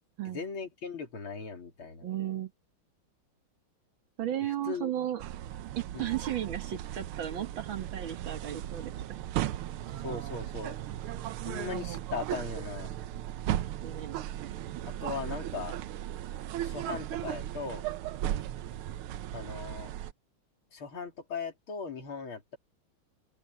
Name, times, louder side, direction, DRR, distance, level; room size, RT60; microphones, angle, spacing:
voice 1, 0.3-2.1 4.7-5.1 5.9-6.1 10.0-10.8 11.5-12.9 14.9-15.8 16.6-17.8 19.3-19.9 20.7-22.6, left 5 dB, 75° left, 3.7 m, -38 dB
voice 2, 2.0-2.5 4.2-5.2 5.8-9.2 13.8-14.2, right 11 dB, 65° right, 2.1 m, -35 dB
sound 1, 5.2-20.1, right 12 dB, 85° right, 1.6 m, -36 dB
open air
omnidirectional pair, 2.3 m